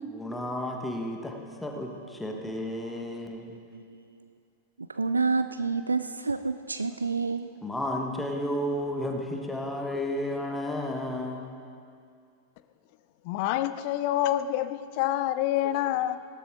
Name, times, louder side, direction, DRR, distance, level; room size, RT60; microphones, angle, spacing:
voice 1, 0.1-3.5 7.0-7.1 7.6-11.5 15.8-15.9, left 1 dB, 5° left, 2 dB, 1.4 m, -32 dB
voice 2, 4.9-7.5, right 4 dB, 80° right, 11 dB, 0.3 m, -28 dB
voice 3, 13.2-16.2, left 13 dB, 45° left, 13 dB, 0.5 m, -27 dB
17.0 x 12.5 x 3.8 m, 2.3 s
figure-of-eight pair, 90°, 0 cm